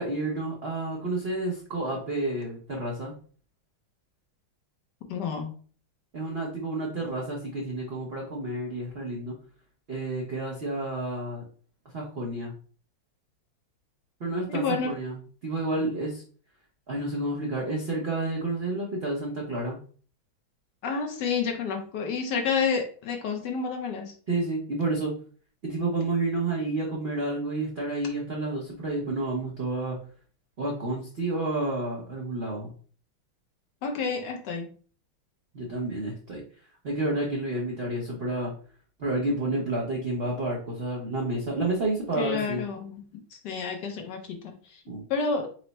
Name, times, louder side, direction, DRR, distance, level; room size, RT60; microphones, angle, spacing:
voice 1, 0.0-3.1 6.1-9.3 9.9-11.4 11.9-12.5 14.2-15.2 15.4-16.2 16.9-19.8 24.3-25.1 25.6-30.0 30.6-32.7 35.5-36.4 36.8-38.5 39.0-42.6 44.9-45.0, right 2 dB, 80° right, -3 dB, 0.5 m, -30 dB
voice 2, 5.1-5.5 14.5-14.9 15.8-15.9 20.8-24.1 33.8-34.7 42.2-44.8 45.1-45.5, left 5 dB, 70° left, 3 dB, 1.1 m, -30 dB
4.5 x 2.0 x 4.0 m, 0.43 s
omnidirectional pair, 2.2 m